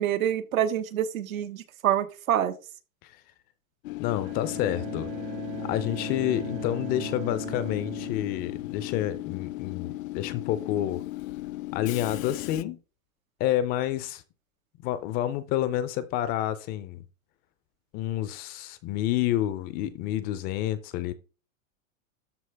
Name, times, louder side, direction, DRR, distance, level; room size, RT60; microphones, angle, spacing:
voice 1, 0.0-2.5, right 11 dB, 90° right, 1.3 m, -26 dB
Train / Subway metro underground, 3.8-12.6, left 18 dB, 75° left, 0.6 m, -36 dB
voice 2, 4.0-5.1 5.6-11.0 11.7-12.8 13.4-14.2 14.8-17.0 17.9-21.1, left 12 dB, 25° left, 0.4 m, -29 dB
Bowed string instrument, 4.2-9.3, right 13 dB, 60° right, 1.8 m, -40 dB
13.0 x 4.4 x 3.3 m
supercardioid pair, 140°, 40 cm